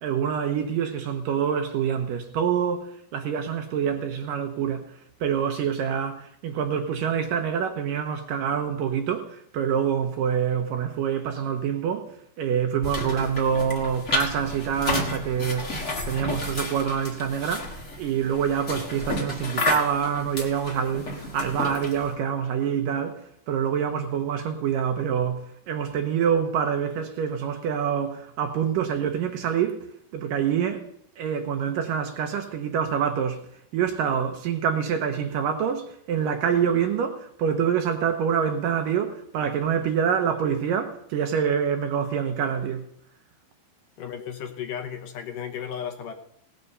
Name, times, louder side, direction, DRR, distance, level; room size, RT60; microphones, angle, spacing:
voice 1, 0.0-15.8 16.1-30.9 31.2-33.4 33.7-42.9, right 8 dB, 70° right, 2.3 m, -26 dB
sound 1, 12.8-22.1, left 2 dB, 35° left, 1.1 m, -31 dB
voice 2, 44.0-46.1, left 8 dB, 70° left, 2.3 m, -34 dB
18.0 x 7.9 x 6.7 m
omnidirectional pair, 4.6 m